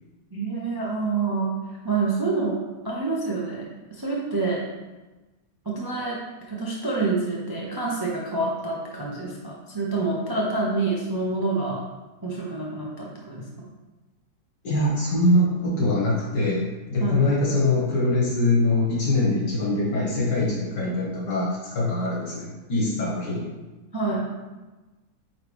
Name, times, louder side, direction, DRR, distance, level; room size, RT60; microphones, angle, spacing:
voice 1, 0.3-1.5 1.8-2.6 2.8-4.6 5.6-6.2 6.5-11.8 12.2-13.4 17.0-17.2 23.9-24.3, right 3 dB, 25° right, -4 dB, 0.5 m, -27 dB
voice 2, 14.6-23.5, left 2 dB, 75° left, -5 dB, 2.4 m, -23 dB
8.9 x 3.2 x 3.5 m, 1.2 s
omnidirectional pair, 1.9 m